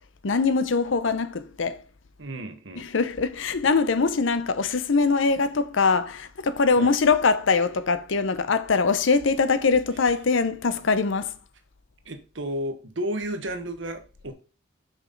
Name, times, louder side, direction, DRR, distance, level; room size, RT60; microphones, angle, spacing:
voice 1, 0.2-1.8 2.8-11.3, left 4 dB, 70° left, 0.7 m, -22 dB
voice 2, 2.2-2.9 6.8-6.9 12.0-14.3, right 1 dB, 65° right, 1.1 m, -32 dB
6.1 x 5.3 x 3.9 m
head